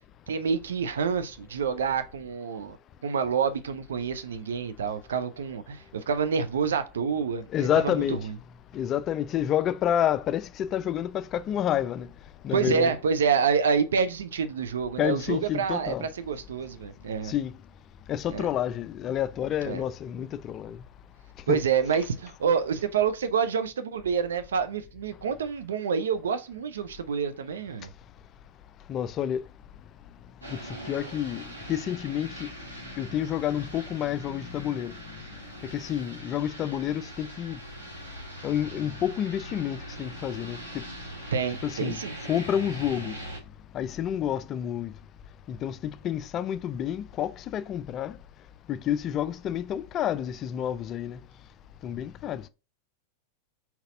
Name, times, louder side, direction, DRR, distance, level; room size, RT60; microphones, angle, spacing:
voice 1, 0.3-2.8 3.0-8.4 12.5-17.3 18.3-18.5 19.6-19.8 21.5-27.9 41.3-42.2, right 6 dB, 65° right, 0.6 m, -28 dB
voice 2, 7.5-8.2 8.7-12.1 12.4-12.9 15.0-16.1 17.2-17.5 18.1-20.8 21.5-21.6 28.9-29.4 30.9-31.4 31.7-32.5 33.0-34.9 35.7-37.6 38.4-40.8 41.6-42.0 42.3-43.2 43.7-44.9 45.5-48.1 48.7-51.2 51.8-52.4, left 10 dB, 30° left, 0.4 m, -29 dB
sound 1, 30.4-43.4, right 1 dB, 85° right, 1.6 m, -42 dB
4.2 x 4.0 x 2.6 m
figure-of-eight pair, 90°, 0 cm